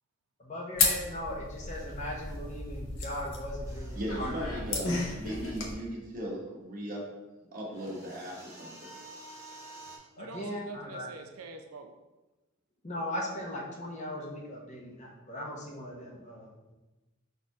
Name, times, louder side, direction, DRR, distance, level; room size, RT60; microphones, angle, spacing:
voice 1, 0.4-4.4 10.2-11.1 12.8-16.7, left 1 dB, 35° left, -1 dB, 0.7 m, -38 dB
sound 1, 0.8-5.7, left 3 dB, 70° left, 0.8 m, -33 dB
sound 2, 3.6-5.7 7.7-10.0, right 2 dB, 15° right, 0.9 m, -50 dB
voice 2, 3.9-7.0 7.5-8.9, equal, 40° right, -3 dB, 1.0 m, -38 dB
voice 3, 10.2-11.9, right 3 dB, 90° right, 4 dB, 0.5 m, -46 dB
4.2 x 2.6 x 4.6 m, 1.1 s
head